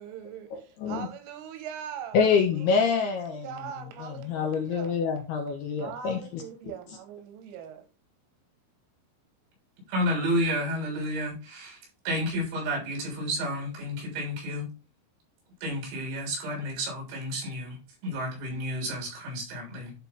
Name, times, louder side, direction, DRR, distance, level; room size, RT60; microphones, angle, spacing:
voice 1, 0.0-2.2 2.6-2.9 3.3-5.0 5.8-7.9, right 9 dB, 90° right, 3.8 m, -41 dB
voice 2, 0.5-1.1 2.1-3.5 4.0-6.4, left 6 dB, 75° left, 2.5 m, -26 dB
voice 3, 9.9-11.8 12.1-14.7 15.6-17.8 18.0-19.9, equal, 70° right, 5.9 m, -31 dB
11.0 x 4.5 x 3.4 m
omnidirectional pair, 5.6 m